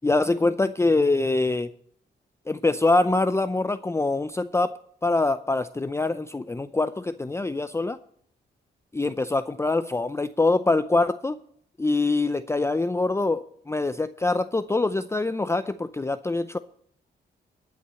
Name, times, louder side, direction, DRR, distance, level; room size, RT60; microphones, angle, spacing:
voice 1, 0.0-1.7 2.5-4.7 5.0-8.0 8.9-11.4 11.8-16.6, left 2 dB, 15° left, 11 dB, 0.5 m, -24 dB
12.5 x 5.9 x 7.6 m, 0.63 s
cardioid pair, 75°, 19 cm